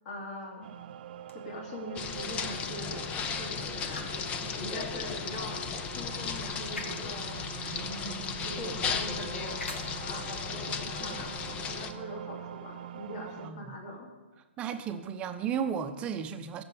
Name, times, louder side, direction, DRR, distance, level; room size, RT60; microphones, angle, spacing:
voice 1, 0.0-0.7 1.3-5.6 5.9-7.4 7.7-9.6 10.0-14.1, equal, 40° left, 0 dB, 3.1 m, -42 dB
sound 1, 0.6-13.5, right 10 dB, 45° right, 0.6 m, -45 dB
sound 2, 1.1-13.2, left 2 dB, 85° left, 2.0 m, -51 dB
sound 3, 2.0-11.9, left 6 dB, 20° left, 0.6 m, -35 dB
voice 2, 13.3-13.8 14.6-16.6, right 7 dB, 15° right, 8 dB, 0.8 m, -34 dB
15.0 x 6.9 x 7.7 m, 1.3 s
hypercardioid pair, 145°, 7 cm